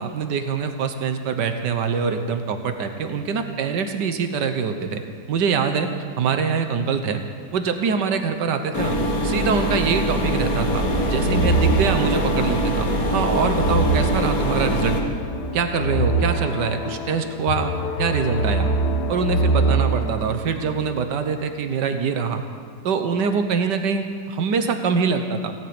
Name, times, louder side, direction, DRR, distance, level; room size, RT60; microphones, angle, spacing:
voice 1, 0.0-5.0 5.3-5.9 6.2-7.2 7.5-9.0 9.2-15.0 15.5-17.7 18.0-18.7 19.1-22.4 22.8-25.5, right 6 dB, 90° right, 7 dB, 1.7 m, -24 dB
sound 1, 8.7-15.0, equal, 55° left, 2.3 m, -23 dB
sound 2, 10.7-20.2, right 2 dB, 80° left, 1.5 m, -24 dB
17.5 x 9.2 x 8.8 m, 2.2 s
omnidirectional pair, 1.8 m